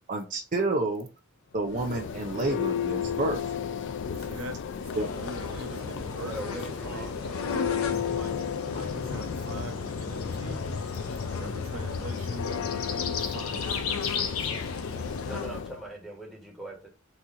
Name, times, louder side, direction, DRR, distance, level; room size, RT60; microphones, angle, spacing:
voice 1, 0.1-1.1 1.5-3.4 5.0-5.1, right 2 dB, 40° right, 0.5 m, -29 dB
Church bell, 1.6-15.8, left 7 dB, 60° left, 0.4 m, -33 dB
voice 2, 4.1-7.1 8.0-8.3 8.6-10.6 11.3-14.7, right 2 dB, 70° right, 0.9 m, -43 dB
sound 1, 4.9-15.5, left 4 dB, 80° left, 0.8 m, -36 dB
voice 3, 6.2-7.4 7.7-8.4 15.2-16.9, right 1 dB, ahead, 1.3 m, -42 dB
4.0 x 2.9 x 3.7 m
head